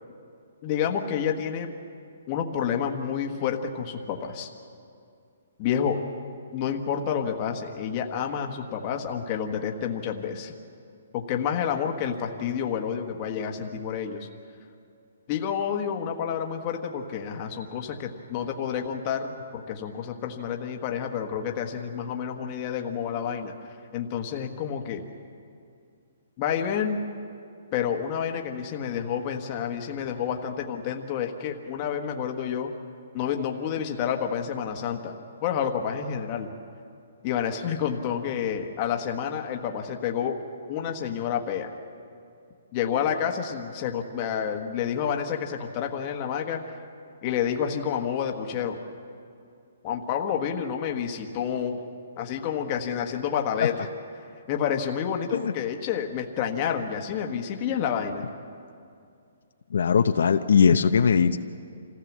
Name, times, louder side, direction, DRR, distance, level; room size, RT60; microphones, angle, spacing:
voice 1, 0.6-1.7 2.3-4.5 5.6-6.0 6.5-10.5 11.1-14.3 15.3-23.5 23.9-25.0 26.4-27.0 27.7-32.7 33.1-35.1 35.4-36.5 37.2-40.4 40.7-41.7 42.7-46.8 47.2-48.8 49.8-51.8 52.2-53.9 54.5-58.2, left 8 dB, 25° left, 3 dB, 1.3 m, -29 dB
voice 2, 59.7-61.4, left 6 dB, 70° left, 8 dB, 0.7 m, -20 dB
26.5 x 15.5 x 7.3 m, 2.4 s
hypercardioid pair, 175°, 0 cm